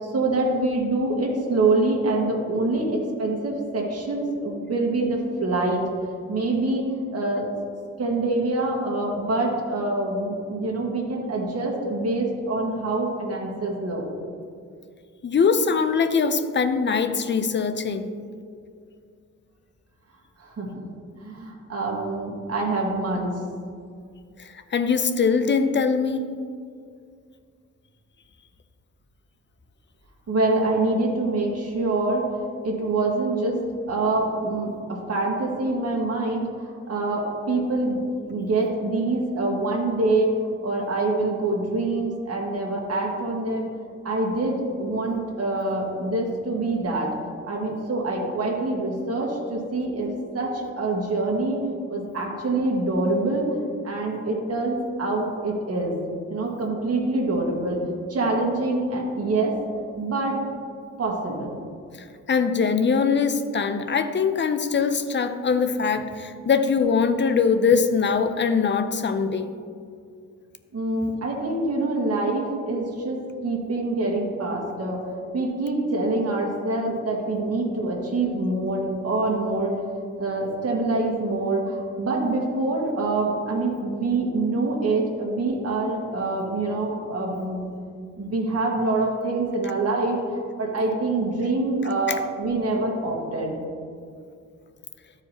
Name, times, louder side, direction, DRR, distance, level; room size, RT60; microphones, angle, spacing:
voice 1, 0.0-5.9 6.3-7.5 8.0-14.0 20.4-20.9 21.2-23.4 30.3-33.6 33.9-43.7 44.0-47.1 47.4-53.6 53.8-56.0 56.3-57.8 58.1-59.5 60.0-60.4 61.0-61.6 70.7-75.1 75.3-79.8 80.2-87.7 88.1-93.5, right 2 dB, 50° right, -1 dB, 1.8 m, -25 dB
voice 2, 15.2-18.1 24.4-26.3 62.3-69.5, left 5 dB, 35° left, 9 dB, 0.6 m, -22 dB
13.0 x 4.9 x 3.0 m, 2.3 s
cardioid pair, 85°, 31 cm